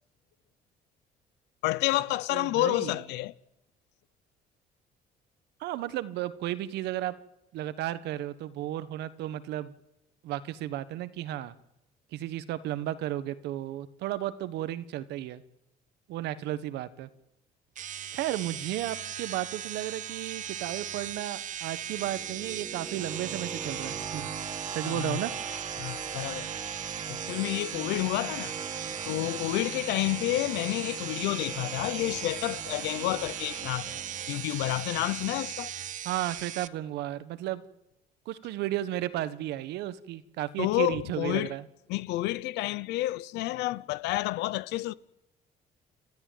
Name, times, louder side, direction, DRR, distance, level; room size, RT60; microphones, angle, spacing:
voice 1, 1.6-3.3 24.8-25.2 25.8-26.5 27.1-28.5 29.1-34.0 34.3-35.7 40.6-41.5 41.9-44.9, left 17 dB, 90° left, 0.8 m, -30 dB
voice 2, 2.3-3.0 5.6-7.2 7.5-9.7 10.2-11.5 12.1-15.4 16.1-17.1 18.1-24.3 24.7-25.3 36.0-37.6 38.2-41.6, right 13 dB, 85° right, 1.4 m, -34 dB
sound 1, 17.7-36.7, right 10 dB, 50° right, 0.8 m, -38 dB
sound 2, 21.8-34.8, right 5 dB, 30° right, 1.9 m, -41 dB
29.5 x 13.5 x 9.3 m
cardioid pair, 110°, 17 cm